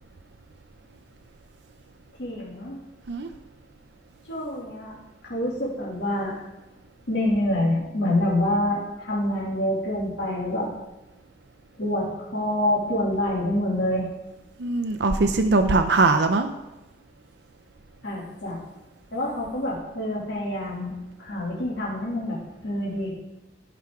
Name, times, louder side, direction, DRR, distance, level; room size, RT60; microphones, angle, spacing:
voice 1, 2.2-2.8 4.3-5.0 5.2-6.4 7.1-10.7 11.8-14.1 18.0-18.6 19.1-22.4 22.6-23.1, left 1 dB, 85° left, -6 dB, 2.6 m, -26 dB
voice 2, 14.6-16.5, right 3 dB, 70° right, 7 dB, 0.6 m, -21 dB
16.5 x 6.0 x 3.7 m, 1.0 s
head